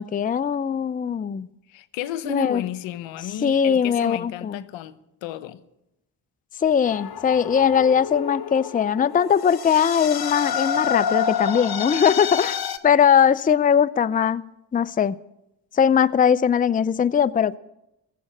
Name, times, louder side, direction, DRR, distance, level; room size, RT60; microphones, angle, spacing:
voice 1, 0.0-1.5 2.2-2.6 3.4-4.6 6.6-14.4 14.7-15.2 15.7-17.6, left 7 dB, 20° left, 0.5 m, -20 dB
voice 2, 1.7-5.6, left 11 dB, 80° left, 0.8 m, -33 dB
sound 1, 6.8-12.8, left 7 dB, 55° left, 1.1 m, -28 dB
19.5 x 7.5 x 8.6 m
hypercardioid pair, 45°, 45 cm